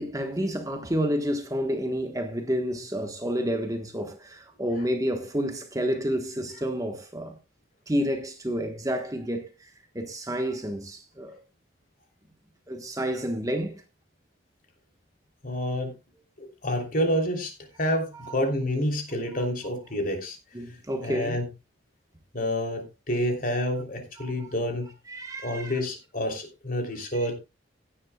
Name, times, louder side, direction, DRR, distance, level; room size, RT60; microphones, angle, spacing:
voice 1, 0.0-7.4 7.9-11.4 12.7-13.8 17.8-18.4 19.3-19.4 20.5-21.4 24.2-24.5 25.1-25.8 27.1-27.4, equal, 15° right, 1.3 m, -30 dB
voice 2, 15.4-15.9 16.4-20.4 21.0-21.4 22.3-24.9 25.4-27.4, equal, 45° left, 3.2 m, -28 dB
16.5 x 9.7 x 2.3 m
head